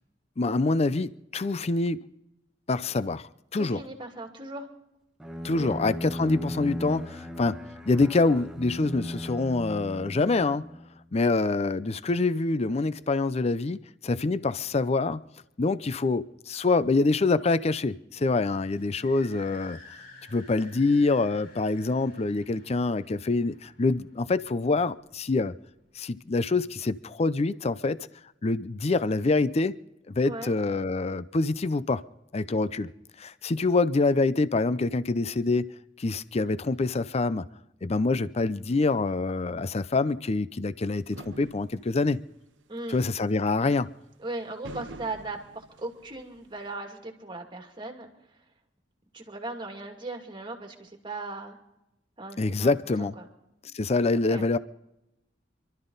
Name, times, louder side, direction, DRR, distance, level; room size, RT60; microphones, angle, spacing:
voice 1, 0.4-2.0 2.7-3.8 5.4-7.6 7.9-10.7 11.1-15.2 15.6-19.8 20.3-25.5 26.0-28.0 28.4-29.7 30.2-32.0 32.3-32.9 33.2-35.7 36.0-37.4 37.8-42.2 42.9-43.9 52.4-53.2 53.7-54.6, left 3 dB, 35° left, 0.5 m, -26 dB
voice 2, 3.6-4.7 5.5-5.7 30.2-30.5 42.7-43.1 44.2-48.1 49.1-51.6 52.2-53.3 53.7-53.8 54.3-54.4, right 2 dB, 25° right, 2.4 m, -38 dB
Bowed string instrument, 5.2-11.0, equal, 5° right, 1.1 m, -37 dB
sound 1, 18.2-25.5, left 2 dB, 55° left, 5.0 m, -52 dB
sound 2, 41.1-42.1 43.2-43.3 44.5-46.6, right 2 dB, 75° right, 0.9 m, -45 dB
26.5 x 13.0 x 4.0 m
head